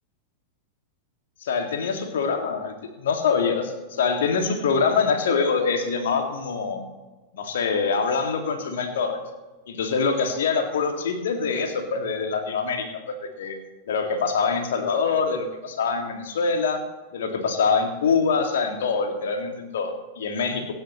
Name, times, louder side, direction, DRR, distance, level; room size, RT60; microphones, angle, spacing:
voice 1, 1.4-6.8 7.3-9.2 9.7-13.6 13.9-16.8 17.1-20.7, left 5 dB, 60° left, 4 dB, 2.2 m, -24 dB
25.0 x 9.9 x 3.1 m, 1.2 s
figure-of-eight pair, 90°, 0 cm